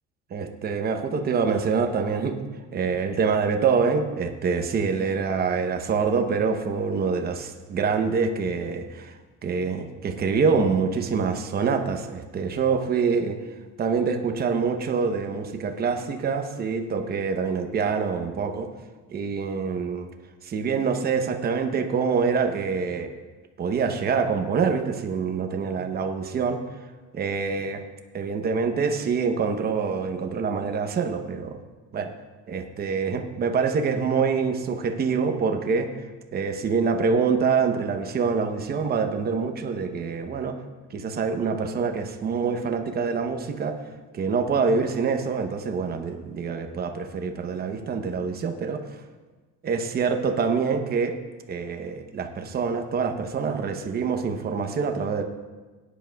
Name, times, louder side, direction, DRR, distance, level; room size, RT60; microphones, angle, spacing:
voice 1, 0.3-2.4 2.7-9.1 9.4-13.4 13.8-18.7 19.1-20.1 20.4-23.1 23.6-26.6 27.1-27.8 28.1-31.6 31.9-32.1 32.5-35.9 36.3-40.6 40.9-43.7 44.1-48.8 49.6-51.1 51.5-55.2, right 5 dB, 30° right, 5 dB, 0.8 m, -25 dB
17.0 x 10.0 x 2.3 m, 1.3 s
cardioid pair, 155°, 31 cm